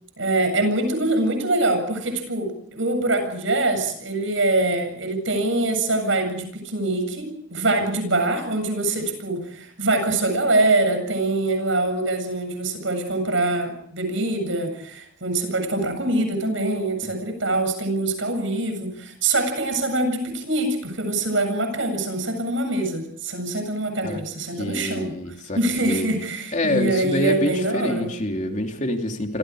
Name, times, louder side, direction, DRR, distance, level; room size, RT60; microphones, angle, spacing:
voice 1, 0.2-25.1 25.5-28.1, right 2 dB, 70° right, 7 dB, 7.8 m, -24 dB
voice 2, 24.6-25.6 25.8-26.1 26.5-29.4, left 1 dB, 35° left, 4 dB, 3.1 m, -26 dB
28.0 x 26.5 x 5.0 m, 0.66 s
head